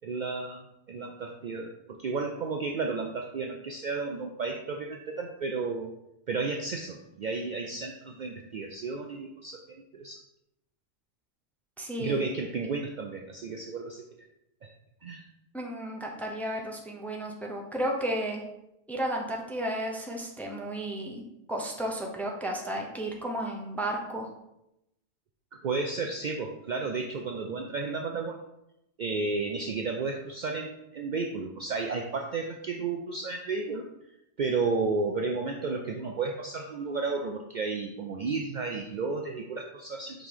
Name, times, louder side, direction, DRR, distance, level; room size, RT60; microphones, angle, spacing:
voice 1, 0.0-0.6 0.9-5.9 6.3-10.2 12.0-14.0 14.6-14.7 15.0-15.2 25.5-28.4 29.0-33.9 34.4-40.3, right 4 dB, 75° right, 3 dB, 0.4 m, -32 dB
voice 2, 11.8-12.2 15.5-18.4 18.9-24.3, right 1 dB, ahead, 0 dB, 0.5 m, -33 dB
5.2 x 3.8 x 4.7 m, 0.86 s
omnidirectional pair, 1.3 m